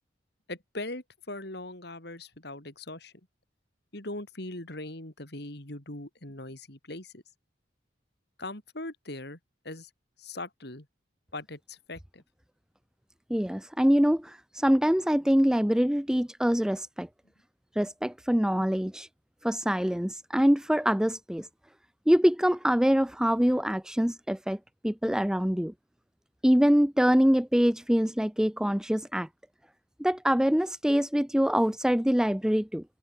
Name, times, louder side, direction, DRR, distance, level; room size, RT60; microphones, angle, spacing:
voice 1, 0.5-3.1 3.9-7.2 8.4-9.4 9.6-9.9 10.2-10.9 11.3-12.2 18.6-18.7, left 2 dB, 60° left, 4.2 m, -40 dB
voice 2, 13.3-17.1 17.8-19.1 19.4-21.5 22.1-24.6 24.8-25.7 26.4-29.3 30.0-32.8, equal, 5° right, 0.5 m, -24 dB
head